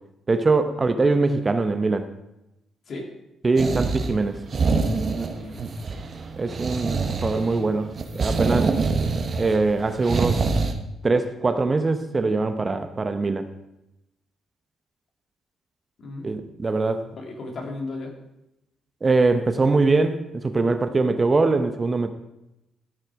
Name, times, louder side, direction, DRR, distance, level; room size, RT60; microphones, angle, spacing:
voice 1, 0.3-2.1 3.4-4.3 6.4-8.7 9.4-10.4 11.0-13.5 16.2-17.0 19.0-22.1, right 3 dB, 30° right, 8 dB, 0.9 m, -22 dB
sound 1, 3.6-10.7, right 4 dB, 45° right, 1.3 m, -25 dB
voice 2, 5.2-6.1 16.0-16.3 17.2-18.1, left 2 dB, 55° left, 1 dB, 2.7 m, -36 dB
14.5 x 6.6 x 4.8 m, 0.90 s
cardioid pair, 90°, 0 cm